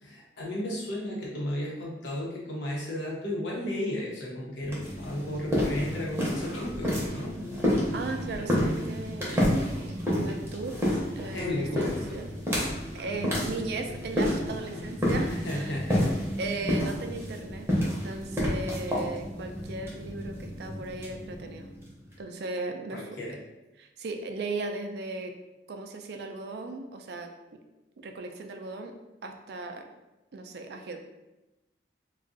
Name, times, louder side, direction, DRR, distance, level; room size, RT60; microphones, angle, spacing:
voice 1, 0.0-7.4 11.2-12.2 12.9-13.0 15.3-16.2 22.9-23.4, left 1 dB, 85° left, -4 dB, 0.9 m, -34 dB
sound 1, 4.6-22.1, equal, 15° right, 0.7 m, -30 dB
voice 2, 7.9-10.8 11.2-12.3 12.9-15.8 16.4-21.7 22.2-23.0 23.8-25.3 25.7-27.3 28.0-28.9 29.2-29.9 30.3-31.0, right 3 dB, 60° right, 5 dB, 0.3 m, -37 dB
2.4 x 2.3 x 3.8 m, 1.0 s
head